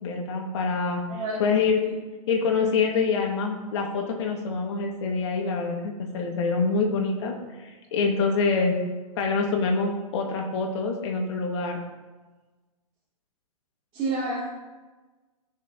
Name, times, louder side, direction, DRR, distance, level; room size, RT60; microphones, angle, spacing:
voice 1, 0.0-1.8 2.3-8.7 9.2-11.8, left 4 dB, 50° left, 2 dB, 2.0 m, -26 dB
voice 2, 1.1-1.9 13.9-14.4, right 2 dB, 30° right, -9 dB, 2.9 m, -30 dB
16.5 x 6.1 x 3.0 m, 1.2 s
figure-of-eight pair, 115°, 19 cm